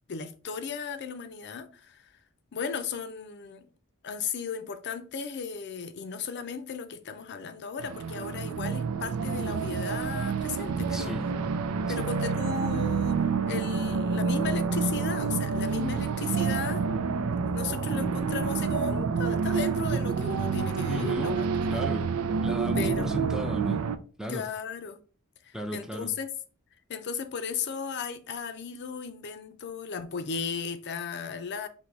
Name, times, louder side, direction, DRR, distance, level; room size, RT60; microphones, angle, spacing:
voice 1, 0.1-2.1 2.5-3.7 4.0-11.2 11.9-13.2 13.5-16.8 17.4-21.8 22.8-23.1 24.3-25.0 25.4-26.3 26.9-31.7, left 6 dB, 55° left, 0.5 m, -35 dB
sound 1, 7.8-24.0, right 5 dB, 90° right, 0.5 m, -28 dB
voice 2, 10.9-11.2 12.0-12.1 20.9-21.4 21.7-22.1 22.4-23.8 24.2-24.4 25.5-26.1, equal, 5° right, 0.5 m, -35 dB
4.6 x 2.8 x 3.9 m
head